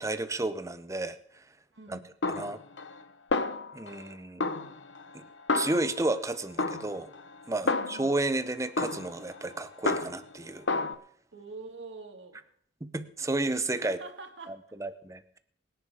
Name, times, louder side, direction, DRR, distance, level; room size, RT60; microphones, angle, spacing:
voice 1, 0.0-1.4 1.9-2.0 2.3-2.6 3.7-4.4 5.1-5.2 5.5-7.1 7.5-10.7 12.8-14.0 14.5-15.4, right 2 dB, 15° right, 0.8 m, -32 dB
voice 2, 1.7-2.1 7.6-8.1 11.3-12.4 13.7-14.6, right 3 dB, 85° right, 1.9 m, -45 dB
Snare drum, 2.2-3.0 3.3-4.1 4.4-6.2 6.6-8.3 8.8-10.4 10.7-10.9, left 3 dB, 85° left, 1.0 m, -31 dB
23.5 x 10.5 x 3.6 m
head